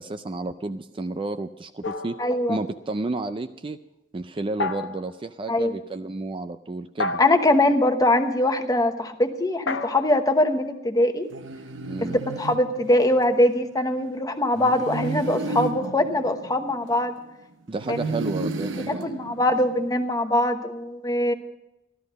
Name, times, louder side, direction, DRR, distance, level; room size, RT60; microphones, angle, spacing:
voice 1, 0.0-2.2 2.5-3.8 4.1-7.2 11.9-12.2 17.7-19.1, right 2 dB, 30° right, 10 dB, 0.4 m, -31 dB
sound 1, 1.8-2.9 4.6-5.2 7.0-7.6 9.7-11.4, left 3 dB, 75° left, 0.9 m, -32 dB
voice 2, 2.2-2.6 5.5-5.7 7.2-11.3 12.0-17.2 17.9-18.0 18.9-21.3, left 1 dB, 20° left, 7 dB, 1.1 m, -22 dB
sound 2, 11.3-13.4 14.6-17.3 17.8-20.0, right 3 dB, 85° right, 0.8 m, -33 dB
13.5 x 13.5 x 5.3 m, 0.89 s
head